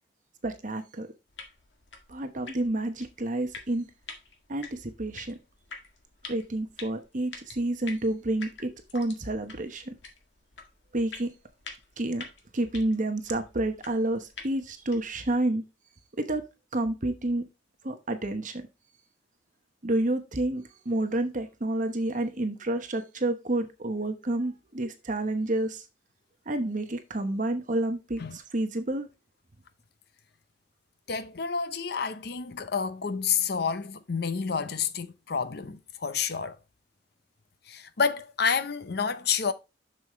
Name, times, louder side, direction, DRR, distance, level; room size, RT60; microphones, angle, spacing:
voice 1, 0.4-1.1 2.1-3.8 4.5-5.4 6.3-9.9 10.9-11.3 12.0-12.3 12.5-15.6 16.2-16.4 16.7-17.5 17.8-18.6 19.8-25.8 26.5-29.1, right 1 dB, 45° right, 1.0 m, -29 dB
sound 1, 1.3-15.2, left 4 dB, 80° left, 1.9 m, -48 dB
voice 2, 31.1-36.6 37.7-39.5, left 6 dB, 60° left, 0.7 m, -29 dB
7.2 x 6.6 x 3.2 m
head